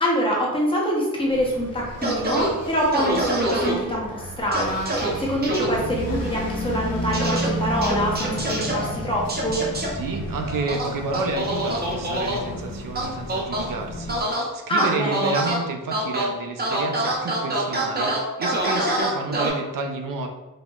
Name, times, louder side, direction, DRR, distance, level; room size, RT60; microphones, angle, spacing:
voice 1, 0.0-9.6 14.7-15.3, equal, 15° left, -4 dB, 0.7 m, -25 dB
Engine, 1.3-14.2, equal, 85° left, 1.0 m, -32 dB
sound 1, 2.0-2.5 2.9-3.7 4.5-5.1 5.4-5.7 7.1-7.5 7.8-8.7 9.3-9.9 10.7-12.4 13.0-13.6 14.1-14.4 14.8-15.6 15.9-16.3 16.6-19.5, right 1 dB, 30° right, 0.6 m, -25 dB
voice 2, 9.9-20.3, right 3 dB, 75° right, 3 dB, 0.5 m, -30 dB
4.0 x 2.8 x 2.3 m, 1.1 s
wide cardioid pair, 175°, 33 cm